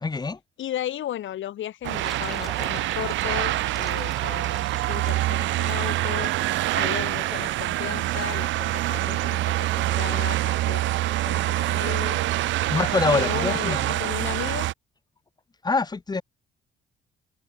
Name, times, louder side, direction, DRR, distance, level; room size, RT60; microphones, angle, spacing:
voice 1, 0.0-0.4 12.7-14.0 15.6-16.2, left 4 dB, 20° left, 0.9 m, -25 dB
voice 2, 0.6-6.3 6.7-12.2 12.7-14.7, left 12 dB, 75° left, 3.8 m, -35 dB
sound 1, 1.8-6.7, equal, ahead, 7.4 m, -46 dB
sound 2, 1.8-14.7, right 16 dB, 70° right, 0.4 m, -25 dB
sound 3, 2.0-9.3, right 5 dB, 40° right, 5.6 m, -46 dB
open air
cardioid pair, 90°, 20 cm